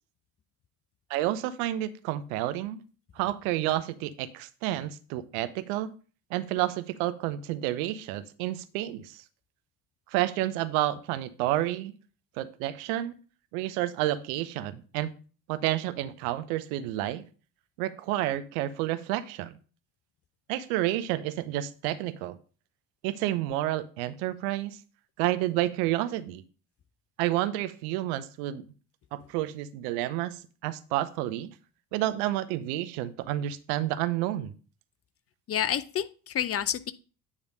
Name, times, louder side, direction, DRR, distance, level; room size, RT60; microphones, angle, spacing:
voice 1, 1.1-2.8 3.2-5.9 6.3-9.2 10.1-11.9 12.4-13.1 13.5-15.1 15.5-17.2 17.8-19.5 20.5-22.4 23.0-24.8 25.2-26.4 27.2-28.6 29.1-31.5 31.9-34.5, right 14 dB, 65° right, 0.8 m, -30 dB
voice 2, 35.5-36.9, left 10 dB, 30° left, 0.6 m, -29 dB
9.7 x 3.4 x 5.4 m
hypercardioid pair, 60°, 48 cm